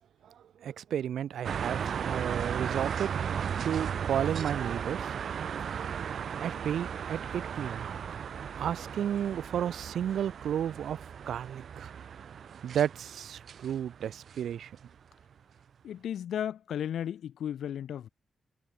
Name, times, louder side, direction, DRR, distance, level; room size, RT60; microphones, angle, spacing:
voice 1, 0.6-3.1 3.6-5.1 5.7-6.1 6.3-7.9 8.6-11.0 11.3-11.9 12.6-14.7, right 9 dB, 75° right, 1.9 m, -32 dB
sound 1, 1.4-14.9, right 7 dB, 55° right, 4.6 m, -36 dB
voice 2, 15.8-18.1, left 9 dB, 80° left, 2.4 m, -34 dB
wide cardioid pair, 165°, 0 cm